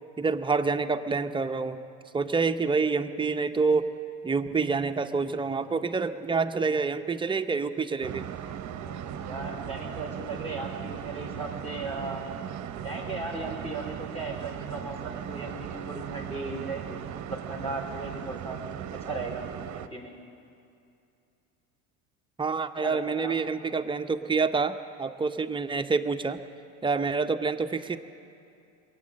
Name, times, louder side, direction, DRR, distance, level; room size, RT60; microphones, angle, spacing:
voice 1, 0.2-1.8 2.1-3.9 4.2-8.3 22.4-26.4 26.8-28.0, right 4 dB, 10° right, 7 dB, 0.7 m, -27 dB
sound 1, 8.0-18.8, left 1 dB, 30° left, 4.3 m, -53 dB
sound 2, 8.0-19.9, right 10 dB, 45° right, 0.8 m, -38 dB
voice 2, 9.3-12.2 12.8-17.0 17.3-18.6 18.9-19.4 19.7-20.1 22.8-23.3, right 3 dB, 15° left, 0 dB, 3.7 m, -36 dB
22.0 x 8.4 x 7.6 m, 2.6 s
hypercardioid pair, 75°, 41 cm